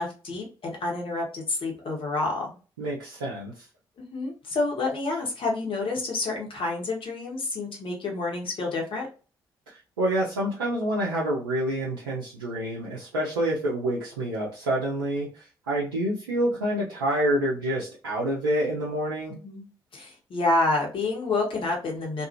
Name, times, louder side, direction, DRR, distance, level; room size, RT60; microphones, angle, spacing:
voice 1, 0.0-2.6 4.0-9.1 19.4-19.6 19.9-22.3, left 2 dB, 50° left, 0 dB, 1.1 m, -28 dB
voice 2, 2.8-3.6 9.7-19.3, right 1 dB, 80° right, -5 dB, 0.5 m, -27 dB
2.6 x 2.4 x 2.8 m, 0.35 s
figure-of-eight pair, 40°, 12 cm